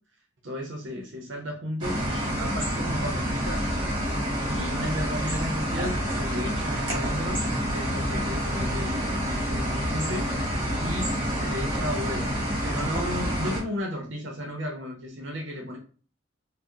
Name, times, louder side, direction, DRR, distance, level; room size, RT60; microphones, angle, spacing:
voice 1, 0.4-3.6 4.5-10.4 10.8-12.3 12.6-15.8, equal, 70° right, 1 dB, 0.7 m, -34 dB
sound 1, 1.8-13.6, equal, 25° right, 1.2 m, -28 dB
3.5 x 2.1 x 2.7 m, 0.41 s
head